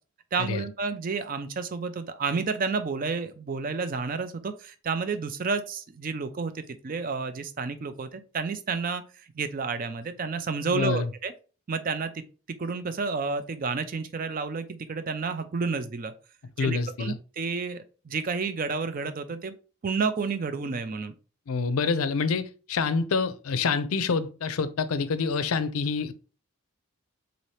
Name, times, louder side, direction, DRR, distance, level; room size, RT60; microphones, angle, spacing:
voice 1, 0.3-9.0 9.4-11.3 11.7-12.2 12.6-16.1 16.6-19.5 19.8-21.1, right 4 dB, 40° right, 0.4 m, -30 dB
voice 2, 10.7-11.1 16.6-17.2 21.5-26.1, left 4 dB, 75° left, 0.5 m, -27 dB
4.0 x 2.8 x 3.2 m
head